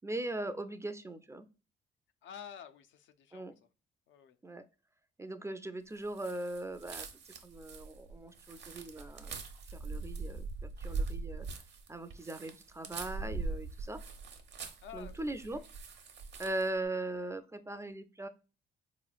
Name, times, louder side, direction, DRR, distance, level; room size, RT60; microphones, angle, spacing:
voice 1, 0.0-1.5 3.3-3.5 4.4-4.6 5.2-7.1 7.4-9.4 9.8-11.5 11.9-14.0 14.9-15.6 16.4-18.3, right 2 dB, 15° right, 10 dB, 0.4 m, -39 dB
voice 2, 2.2-3.6 4.1-4.4 14.8-15.3, left 8 dB, 70° left, 9 dB, 0.5 m, -50 dB
sound 1, 6.1-16.8, right 3 dB, 60° right, 0.7 m, -42 dB
3.9 x 3.0 x 2.3 m, 0.33 s
cardioid pair, 90°, 20 cm